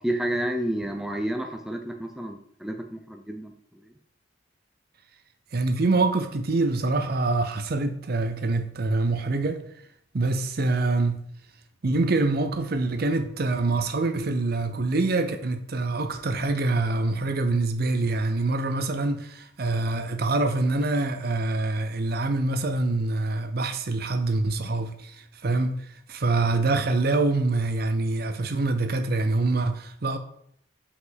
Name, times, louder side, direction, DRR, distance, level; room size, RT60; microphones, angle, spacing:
voice 1, 0.0-3.5, right 1 dB, ahead, 0.5 m, -30 dB
voice 2, 5.5-9.6 10.1-11.3 11.8-25.8 26.1-30.2, right 2 dB, 50° right, 0.6 m, -25 dB
5.5 x 5.1 x 4.0 m
head